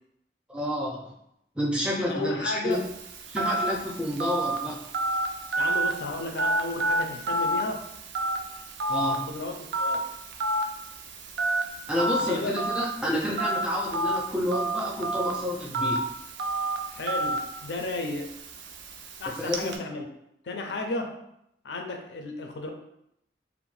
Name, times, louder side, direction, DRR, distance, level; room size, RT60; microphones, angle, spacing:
voice 1, 0.5-1.1 1.5-2.8 3.3-4.8 8.9-9.3 11.9-16.0 19.4-19.7, left 1 dB, 5° right, -3 dB, 0.4 m, -29 dB
voice 2, 2.1-2.8 5.6-7.8 9.1-10.0 12.2-12.7 16.9-18.3 19.2-20.0 20.4-21.2 21.6-22.7, left 2 dB, 80° left, 3 dB, 0.4 m, -33 dB
Telephone, 2.7-19.8, right 1 dB, 90° right, 0.4 m, -30 dB
2.5 x 2.0 x 3.1 m, 0.78 s
head